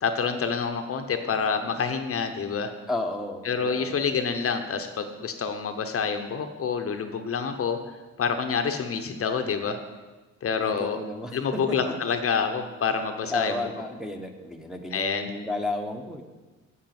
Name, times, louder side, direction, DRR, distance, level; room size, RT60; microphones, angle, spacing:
voice 1, 0.0-2.7 3.4-7.8 8.2-9.8 10.4-11.0 11.3-13.6 14.9-15.3, left 6 dB, 50° left, 6 dB, 0.9 m, -27 dB
voice 2, 2.9-4.0 10.6-11.8 13.3-16.2, left 2 dB, ahead, 1 dB, 1.0 m, -32 dB
8.2 x 7.6 x 6.0 m, 1.2 s
cardioid pair, 90°, 30 cm